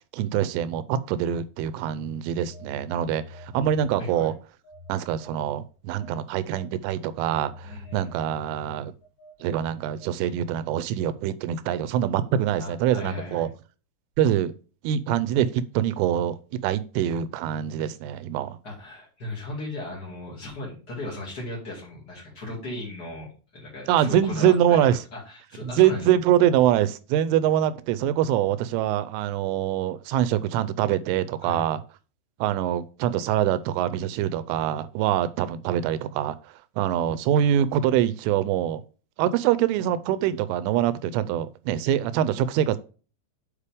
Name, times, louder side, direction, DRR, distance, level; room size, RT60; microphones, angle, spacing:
voice 1, 0.1-4.3 4.9-8.9 9.4-13.5 14.2-14.5 14.8-16.4 16.6-18.6 23.9-25.0 25.6-31.8 32.4-36.4 36.8-38.8 39.2-42.8, right 10 dB, 85° right, 13 dB, 2.9 m, -24 dB
Telephone, 2.3-4.3 4.6-10.5, left 2 dB, 50° left, 3.9 m, -47 dB
voice 2, 4.0-4.3 7.6-8.0 10.2-10.3 12.6-13.5 18.6-26.2 31.4-31.6, left 2 dB, 70° left, -3 dB, 0.9 m, -37 dB
8.2 x 5.1 x 3.5 m, 0.36 s
omnidirectional pair, 5.8 m